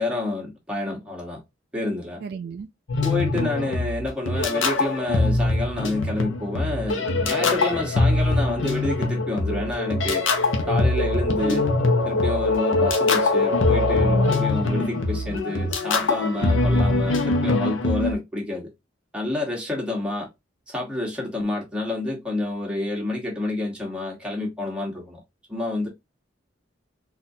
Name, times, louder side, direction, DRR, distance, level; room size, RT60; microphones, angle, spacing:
voice 1, 0.0-1.4 1.7-2.2 3.0-10.2 10.6-11.7 12.0-18.7 19.1-20.3 20.7-25.2 25.5-25.9, left 2 dB, 5° right, 1.2 m, -28 dB
voice 2, 2.2-2.7 13.9-14.4, right 5 dB, 55° right, 0.3 m, -32 dB
sound 1, 2.9-18.1, left 2 dB, 85° left, 0.7 m, -22 dB
4.1 x 2.4 x 2.7 m
head